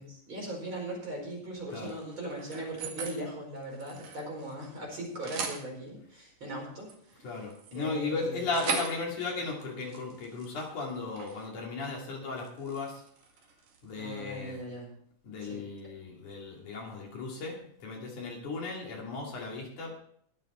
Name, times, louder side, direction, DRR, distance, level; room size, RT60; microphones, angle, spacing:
voice 1, 0.0-6.9 7.7-8.4 14.0-14.9 15.4-15.6, right 1 dB, 35° right, -2 dB, 5.4 m, -39 dB
sound 1, 1.7-3.2 3.6-4.8 5.0-5.6 6.5-11.5 11.8-12.1 12.4-13.9, right 5 dB, 70° right, 3.6 m, -40 dB
voice 2, 7.2-13.0 13.8-14.6 15.2-19.9, left 3 dB, 60° left, -1 dB, 4.0 m, -36 dB
21.5 x 7.5 x 4.4 m, 0.64 s
omnidirectional pair, 3.9 m